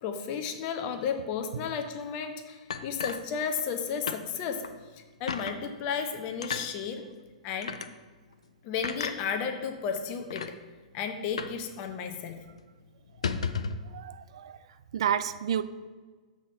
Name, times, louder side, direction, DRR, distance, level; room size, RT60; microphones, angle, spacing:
voice 1, 0.0-4.6 5.2-7.1 7.4-7.8 8.6-10.6 10.9-12.4, left 6 dB, 35° left, 6 dB, 0.8 m, -33 dB
sound 1, 2.7-3.8 4.1-4.2 4.6-4.8 5.3-5.6 6.4-6.7 7.6-7.9 8.8-9.2 9.9-10.0 10.3-10.5 11.4-11.6 11.9-12.0 12.3-12.5 13.1-13.8, left 5 dB, 65° left, 0.5 m, -33 dB
voice 2, 13.9-14.6 14.9-15.6, right 9 dB, 55° right, 12 dB, 0.4 m, -30 dB
7.4 x 4.3 x 5.4 m, 1.4 s
figure-of-eight pair, 105°, 4 cm